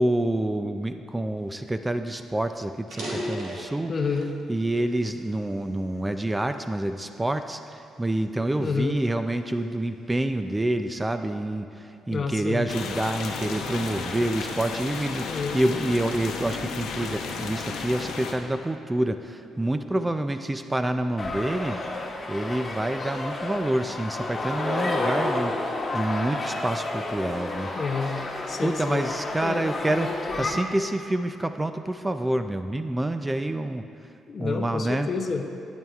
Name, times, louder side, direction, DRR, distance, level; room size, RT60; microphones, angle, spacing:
voice 1, 0.0-3.9 4.5-21.8 22.3-27.7 28.6-30.1 30.4-33.8 34.4-35.1, right 1 dB, 15° right, 8 dB, 0.3 m, -27 dB
sound 1, 2.1-2.3 2.8-4.4 4.9-6.2 6.8-7.0 7.7-9.7, equal, 85° right, 1.8 m, -37 dB
voice 2, 3.9-4.3 8.6-8.9 12.1-12.7 15.3-15.6 27.7-28.2 28.5-29.1 29.4-30.7 34.3-35.5, left 4 dB, 45° left, 5 dB, 0.6 m, -29 dB
sound 2, 12.7-18.3, left 5 dB, 85° left, 0.8 m, -33 dB
sound 3, 21.2-30.5, left 2 dB, 30° left, 1.1 m, -31 dB
12.0 x 9.1 x 2.4 m, 2.5 s
cardioid pair, 90°, 0 cm